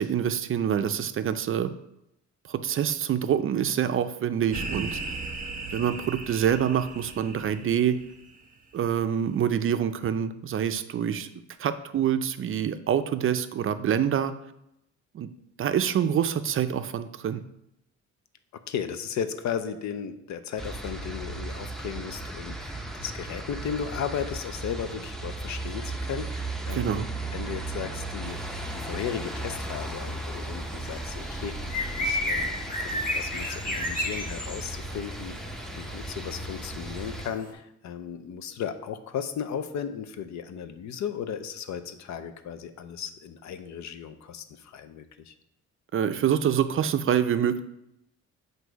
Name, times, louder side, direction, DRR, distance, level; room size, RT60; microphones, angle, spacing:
voice 1, 0.0-1.7 2.5-5.0 5.7-8.0 8.7-11.3 11.6-14.3 15.1-15.3 15.6-17.4 26.7-27.1 45.9-47.6, right 9 dB, 45° right, 10 dB, 0.4 m, -26 dB
sound 1, 4.5-8.4, right 3 dB, 25° right, 0.8 m, -37 dB
voice 2, 18.5-27.0 27.3-45.3, left 8 dB, 65° left, 10 dB, 0.6 m, -35 dB
sound 2, 20.6-37.3, right 2 dB, ahead, 0.6 m, -36 dB
sound 3, 28.2-37.5, left 1 dB, 30° left, 1.3 m, -35 dB
7.9 x 2.7 x 4.6 m, 0.81 s
cardioid pair, 90°, 30 cm